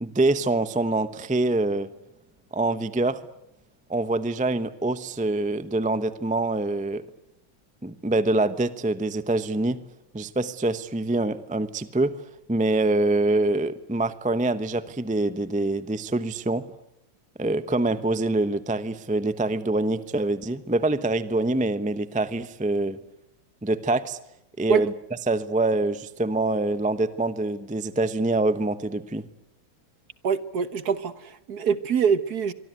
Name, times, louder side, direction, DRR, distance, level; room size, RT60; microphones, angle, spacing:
voice 1, 0.0-1.9 2.5-3.2 3.9-7.0 7.8-9.8 10.1-12.1 12.5-16.6 17.4-23.0 23.6-24.2 24.6-24.9 25.3-29.2, right 2 dB, 10° right, 13 dB, 0.3 m, -25 dB
voice 2, 30.2-32.5, right 6 dB, 55° right, 14 dB, 1.6 m, -24 dB
25.0 x 24.0 x 9.3 m, 0.83 s
omnidirectional pair, 2.2 m